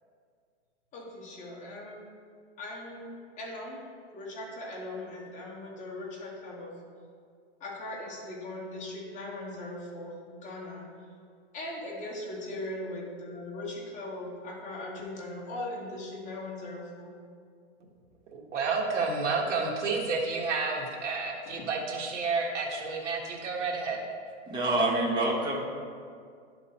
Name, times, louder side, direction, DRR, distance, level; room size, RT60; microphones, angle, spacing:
voice 1, 0.9-2.0 2.6-6.8 7.6-10.9 11.5-17.2, left 1 dB, 20° left, -3 dB, 1.5 m, -39 dB
voice 2, 18.3-24.0, right 4 dB, 80° right, -1 dB, 1.6 m, -30 dB
voice 3, 24.5-25.6, right 2 dB, 10° right, -3 dB, 1.1 m, -26 dB
11.0 x 3.9 x 4.2 m, 2.1 s
hypercardioid pair, 140°, 36 cm